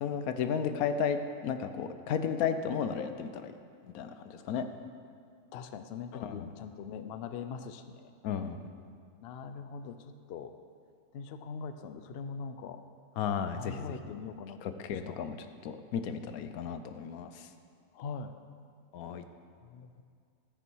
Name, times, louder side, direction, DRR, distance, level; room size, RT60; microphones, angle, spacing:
voice 1, 0.0-3.5 3.8-4.6 6.1-6.5 8.2-8.7 13.2-14.2 14.6-15.4 15.6-17.5 18.9-19.2, left 7 dB, 80° left, 9 dB, 1.1 m, -34 dB
voice 2, 5.5-8.1 9.2-10.5 11.1-12.8 13.5-15.2 17.9-18.3 19.6-20.0, left 5 dB, 65° left, 9 dB, 0.6 m, -42 dB
13.5 x 6.1 x 4.6 m, 2.2 s
omnidirectional pair, 1.5 m